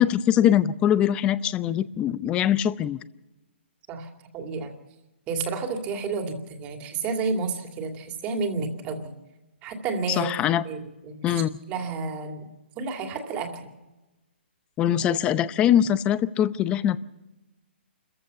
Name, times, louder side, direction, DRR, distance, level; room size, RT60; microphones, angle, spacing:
voice 1, 0.0-3.0 10.1-10.6 11.2-11.5 14.8-17.0, left 10 dB, 15° left, 16 dB, 0.6 m, -22 dB
voice 2, 3.9-4.7 5.3-9.1 9.6-10.3 10.6-11.4 11.7-12.5 12.7-13.6, right 4 dB, 20° right, 4 dB, 2.6 m, -31 dB
28.0 x 15.0 x 6.9 m, 1.1 s
hypercardioid pair, 155°, 6 cm